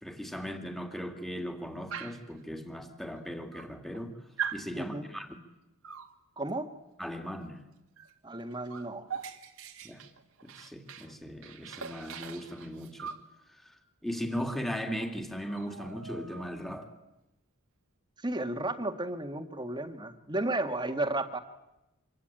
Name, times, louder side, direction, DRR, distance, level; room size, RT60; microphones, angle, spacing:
voice 1, 0.0-4.2 4.5-5.4 7.0-7.6 9.8-10.0 10.4-13.1 13.6-16.9, equal, ahead, 2.6 m, -38 dB
Dog, 1.9-2.3 3.2-3.3 3.5-4.0 4.4-4.7 5.8-6.1 8.0-8.1 8.4-11.1 11.4-13.3 14.6-14.7 15.0-15.2 15.4-16.7, right 7 dB, 70° right, 2.1 m, -41 dB
voice 2, 4.7-5.0 6.4-6.7 8.2-9.1 18.2-21.4, right 2 dB, 20° right, 1.7 m, -33 dB
26.0 x 25.0 x 9.0 m
head